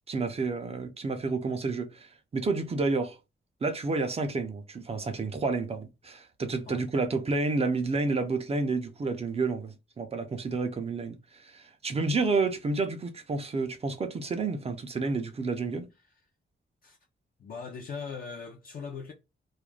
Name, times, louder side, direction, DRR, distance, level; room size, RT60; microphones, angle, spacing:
voice 1, 0.1-3.2 3.6-15.9, right 3 dB, 30° right, 0.4 m, -30 dB
voice 2, 17.4-19.1, left 5 dB, 45° left, 0.4 m, -40 dB
2.4 x 2.1 x 3.1 m
wide cardioid pair, 175°, 21 cm